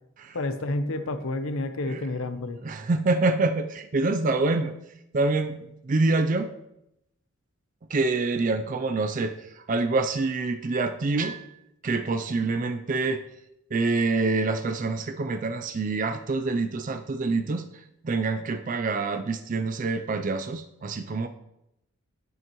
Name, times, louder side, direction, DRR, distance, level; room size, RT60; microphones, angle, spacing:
voice 1, 0.3-2.6, left 2 dB, 75° left, 10 dB, 0.7 m, -29 dB
voice 2, 1.9-2.2 2.6-4.8 5.1-6.5 7.9-11.6 11.8-13.2 13.7-17.7 18.0-21.3, right 3 dB, 40° right, 8 dB, 0.4 m, -26 dB
9.3 x 8.0 x 3.0 m, 0.84 s
head